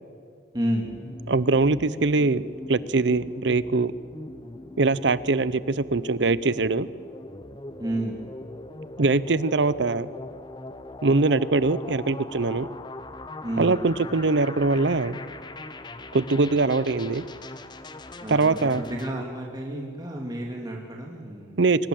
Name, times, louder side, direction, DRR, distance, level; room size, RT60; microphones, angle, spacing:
voice 1, 0.5-0.9 7.8-8.2 13.4-14.0 18.2-21.6, right 1 dB, 20° right, -1 dB, 2.3 m, -31 dB
sound 1, 0.8-19.1, left 2 dB, 25° left, 0.9 m, -41 dB
voice 2, 1.3-3.9 4.8-6.9 9.0-10.1 11.0-12.7 13.6-15.2 16.1-17.3 18.3-18.8 21.6-21.9, right 3 dB, 65° right, 17 dB, 0.7 m, -22 dB
23.0 x 20.0 x 7.7 m, 2.3 s
head